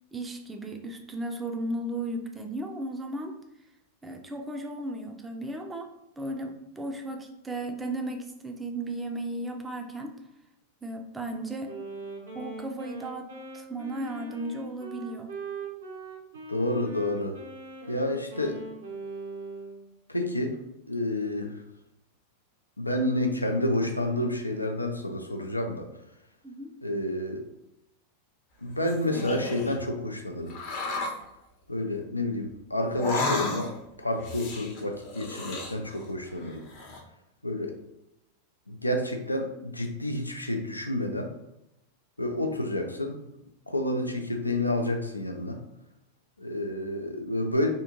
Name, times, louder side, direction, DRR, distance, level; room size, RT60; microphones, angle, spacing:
voice 1, 0.1-3.4 4.0-5.9 6.2-10.1 10.8-11.7 12.3-13.3 13.5-15.3 26.4-26.7, right 1 dB, 10° right, 4 dB, 0.4 m, -35 dB
Wind instrument woodwind instrument, 11.6-19.9, right 3 dB, 70° right, 0.8 m, -41 dB
voice 2, 16.5-17.4 17.9-18.6 20.1-20.6 20.9-21.6 22.8-25.9 26.8-27.4 28.6-30.5 31.7-33.7 34.0-36.6 37.4-37.8 38.7-41.3 42.2-43.3 43.7-45.6 46.4-47.7, left 1 dB, 85° left, 4 dB, 0.4 m, -29 dB
sound 1, 28.6-29.8 30.5-31.2 32.9-33.9 34.2-36.1 36.4-37.0, left 2 dB, 45° left, 0.7 m, -33 dB
3.5 x 2.5 x 2.9 m, 0.85 s
figure-of-eight pair, 90°, 0 cm